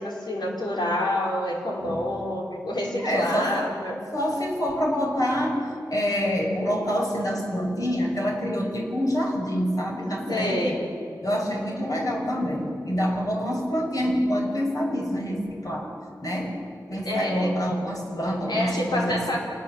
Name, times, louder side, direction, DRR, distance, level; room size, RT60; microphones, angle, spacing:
voice 1, 0.0-4.0 10.3-10.8 17.1-17.6 18.5-19.4, left 1 dB, 80° left, -2 dB, 5.3 m, -27 dB
voice 2, 1.7-2.0 3.0-3.6 4.1-10.8 11.2-16.6 16.9-19.4, equal, 55° left, 0 dB, 5.8 m, -26 dB
27.0 x 19.5 x 7.5 m, 2.5 s
cardioid pair, 45°, 7 cm